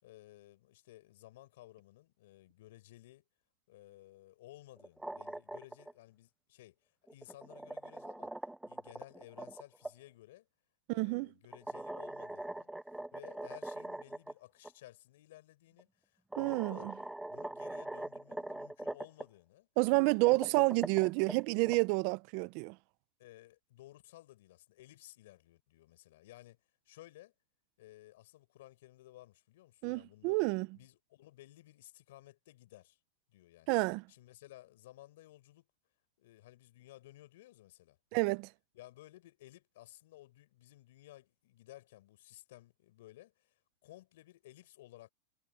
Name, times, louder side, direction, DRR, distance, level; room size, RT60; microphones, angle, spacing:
voice 1, 0.0-3.3 3.7-6.8 7.1-8.3 8.6-10.5 10.9-12.7 13.1-16.9 17.3-19.7 20.3-20.5 23.2-26.6 26.9-27.3 27.8-30.4 30.7-33.0 33.3-33.7 34.1-35.7 36.2-38.0 38.7-45.1, left 16 dB, 70° left, 5.4 m, -56 dB
sound 1, 4.8-5.9 7.1-9.9 11.5-14.3 14.6-14.7 15.8-15.9 16.3-19.2 20.1-21.8, right 1 dB, 5° right, 0.6 m, -42 dB
voice 2, 10.9-11.3 16.4-16.9 19.8-22.8 29.8-30.7 33.7-34.0 38.1-38.5, right 25 dB, 50° right, 0.7 m, -29 dB
supercardioid pair, 135°, 0 cm